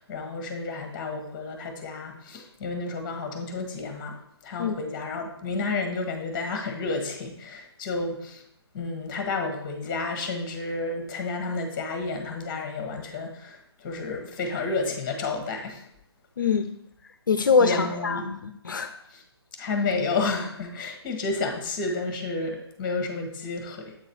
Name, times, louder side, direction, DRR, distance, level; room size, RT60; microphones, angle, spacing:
voice 1, 0.0-4.1 4.4-8.4 8.7-15.8 17.6-18.3 19.1-19.2 19.6-23.9, left 3 dB, 20° left, 4 dB, 1.3 m, -31 dB
voice 2, 16.4-16.7 17.3-18.9, left 5 dB, 50° left, 8 dB, 0.6 m, -23 dB
7.9 x 3.9 x 4.4 m, 0.76 s
figure-of-eight pair, 140°, 14 cm